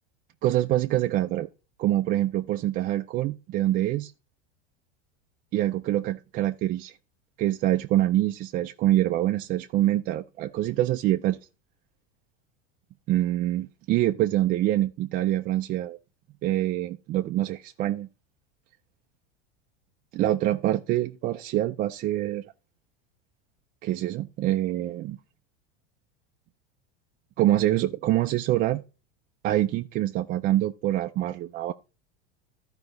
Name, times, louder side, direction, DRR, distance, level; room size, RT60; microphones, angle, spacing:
voice 1, 0.4-1.5 1.8-4.1 5.5-7.0 7.4-11.4 13.1-16.0 16.4-18.1 20.1-22.4 23.8-25.2 27.4-28.8 29.4-31.7, right 14 dB, 30° right, 0.4 m, -25 dB
13.0 x 4.8 x 3.9 m
supercardioid pair, 140°, 30 cm